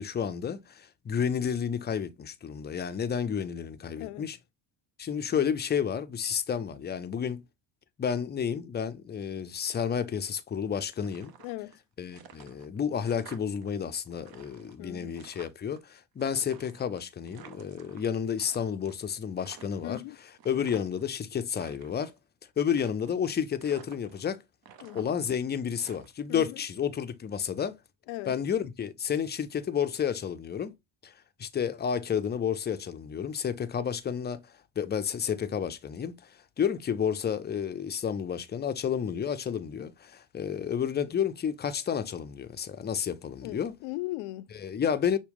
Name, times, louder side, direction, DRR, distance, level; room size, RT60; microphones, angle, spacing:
voice 1, 0.0-4.4 5.0-7.4 8.0-11.3 12.0-22.1 22.6-24.4 24.9-27.8 28.2-30.7 31.0-31.1 31.4-36.1 36.6-43.7 44.5-45.2, left 7 dB, 20° left, 0.5 m, -31 dB
voice 2, 4.0-4.3 11.4-11.7 14.8-15.2 19.8-20.2 24.8-25.1 26.3-26.6 28.1-28.4 43.4-44.5, left 18 dB, 70° left, 0.5 m, -38 dB
sound 1, 10.9-11.8 12.1-13.7 14.0-15.8 16.2-18.6 18.8-19.1 19.4-21.1 21.4-22.2 22.7-23.3 23.6-24.3 24.6-26.5, right 8 dB, 45° right, 1.0 m, -52 dB
6.0 x 2.3 x 3.5 m
supercardioid pair, 75°, 49 cm